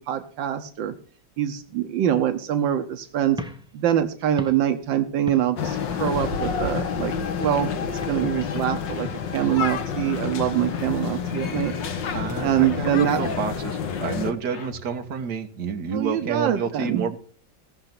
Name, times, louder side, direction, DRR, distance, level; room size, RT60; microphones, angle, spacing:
voice 1, 0.1-0.9 1.4-3.4 3.7-7.1 7.4-7.8 8.1-11.7 12.4-13.2 15.9-17.1, right 10 dB, 85° right, 8 dB, 1.6 m, -24 dB
sound 1, 3.3-5.7 6.1-6.4 6.8-7.7 8.0-8.3 8.6-11.7, left 1 dB, 5° right, 0.6 m, -40 dB
subway chelas, 5.6-14.3, left 6 dB, 75° left, 2.0 m, -29 dB
sound 2, 10.0-15.1, left 5 dB, 45° left, 1.1 m, -39 dB
voice 2, 12.1-17.2, right 6 dB, 60° right, 6 dB, 1.9 m, -29 dB
17.0 x 6.7 x 5.9 m, 0.43 s
omnidirectional pair, 2.0 m